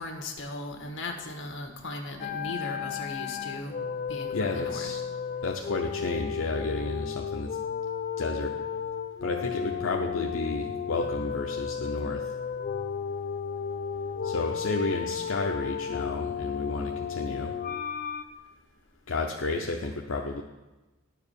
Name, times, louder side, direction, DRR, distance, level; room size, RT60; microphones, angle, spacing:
voice 1, 0.0-3.7 4.1-4.9, left 2 dB, 70° left, 4 dB, 1.4 m, -37 dB
sound 1, 2.2-18.2, left 7 dB, 45° left, 0.4 m, -33 dB
voice 2, 4.3-5.0 5.4-7.6 8.2-8.5 9.2-12.3 14.2-17.5 19.1-20.4, left 3 dB, 85° left, 2 dB, 0.7 m, -32 dB
10.5 x 4.7 x 6.9 m, 1.1 s
head